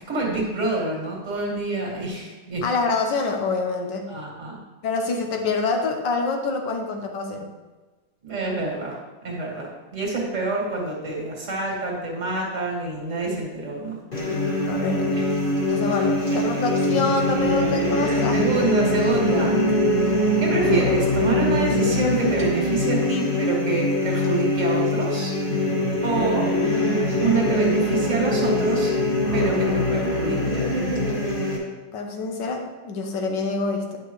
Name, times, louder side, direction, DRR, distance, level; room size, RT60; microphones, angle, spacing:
voice 1, 0.1-2.6 4.1-4.6 8.2-9.0 9.2-14.0 15.1-15.4 16.3-16.4 18.3-19.5 20.4-25.3 26.0-26.5 27.2-28.9 29.3-30.8, right 3 dB, 40° right, -3 dB, 2.2 m, -27 dB
voice 2, 2.6-4.1 4.8-7.5 14.7-15.2 15.7-18.4 31.9-34.0, left 3 dB, 75° left, 3 dB, 1.6 m, -26 dB
sound 1, 14.1-31.6, left 1 dB, 35° left, 2.1 m, -22 dB
9.9 x 6.2 x 3.1 m, 1.2 s
omnidirectional pair, 2.0 m